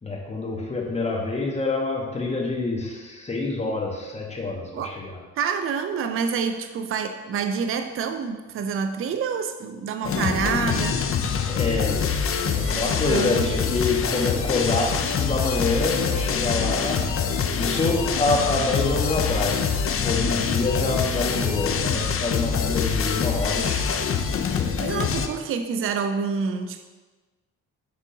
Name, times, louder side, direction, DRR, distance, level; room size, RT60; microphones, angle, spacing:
voice 1, 0.0-5.2 11.5-12.1 12.4-17.1 17.5-19.7 20.0-24.0 24.5-24.8, left 3 dB, 20° left, -1 dB, 1.3 m, -26 dB
voice 2, 5.4-11.1 12.4-12.8 13.1-13.5 24.8-26.9, right 6 dB, 45° right, 7 dB, 0.5 m, -27 dB
sound 1, 10.0-25.3, left 6 dB, 45° left, 0.6 m, -25 dB
10.0 x 3.6 x 2.8 m, 1.3 s
cardioid pair, 90°, 30 cm